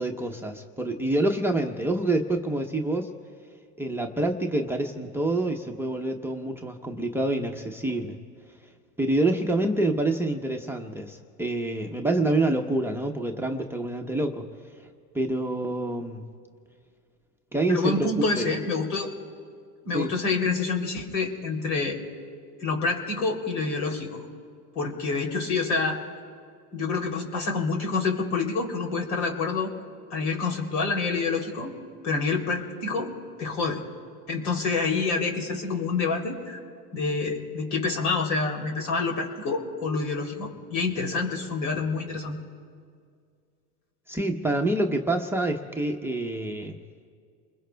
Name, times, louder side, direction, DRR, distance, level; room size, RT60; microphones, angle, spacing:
voice 1, 0.0-3.1 3.8-8.2 9.0-14.5 15.1-16.2 17.5-18.1 18.4-18.5 19.9-20.1 44.1-46.8, right 2 dB, 5° right, 4 dB, 0.9 m, -27 dB
voice 2, 17.7-19.1 19.8-22.0 22.6-24.2 24.7-26.0 26.7-29.7 30.1-31.7 32.0-33.1 33.4-33.8 34.3-36.6 36.9-42.4, left 4 dB, 70° left, 2 dB, 3.3 m, -27 dB
29.5 x 21.5 x 2.3 m, 2.1 s
hypercardioid pair, 110°, 47 cm